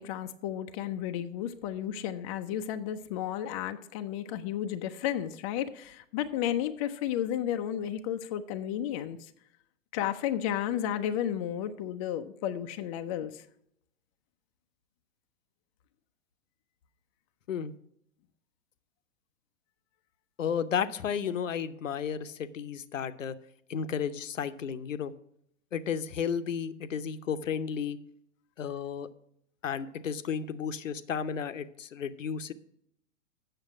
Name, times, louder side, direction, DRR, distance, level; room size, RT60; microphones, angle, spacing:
voice 1, 0.0-9.2 9.9-13.4, left 10 dB, 25° left, 7 dB, 0.5 m, -33 dB
voice 2, 20.4-23.3 23.7-25.1 25.7-28.0 28.6-29.1 29.6-32.5, left 7 dB, 70° left, 12 dB, 0.7 m, -33 dB
7.8 x 6.6 x 6.0 m, 0.74 s
figure-of-eight pair, 105°, 39 cm